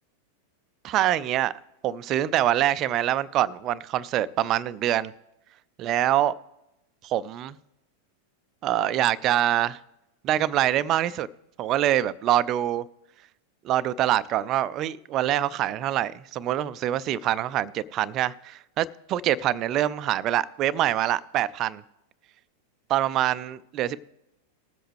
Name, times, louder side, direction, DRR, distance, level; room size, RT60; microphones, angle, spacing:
voice 1, 0.8-1.5 1.8-5.1 5.8-6.3 7.0-7.6 8.6-9.8 10.2-11.3 11.6-12.8 13.6-21.8 22.9-24.0, right 12 dB, 35° right, 0.5 m, -25 dB
20.0 x 7.9 x 3.2 m
figure-of-eight pair, 90°, 0 cm